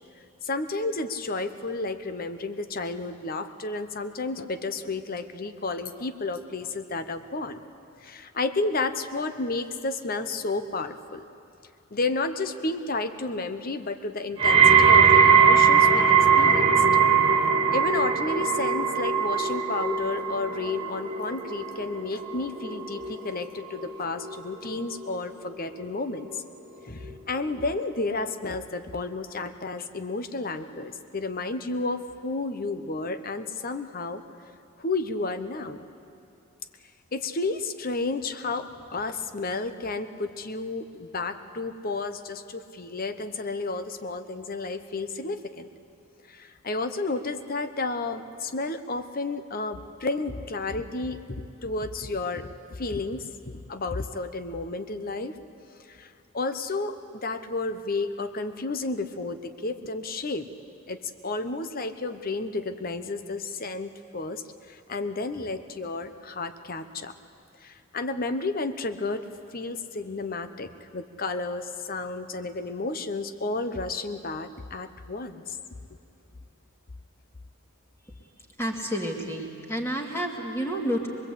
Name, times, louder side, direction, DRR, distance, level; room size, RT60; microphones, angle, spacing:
voice 1, 0.4-7.6 8.0-11.2 11.9-16.7 17.7-26.4 26.8-34.2 34.8-35.8 37.1-45.7 46.3-55.4 55.9-60.5 60.9-67.1 67.6-69.3 69.5-75.6, left 3 dB, 40° left, 10 dB, 0.9 m, -32 dB
sound 1, 14.4-25.5 25.8-26.4 27.1-27.2, right 6 dB, 25° right, 1.4 m, -21 dB
voice 2, 78.6-81.1, equal, 10° left, 1 dB, 2.3 m, -30 dB
24.0 x 21.5 x 8.4 m, 2.5 s
head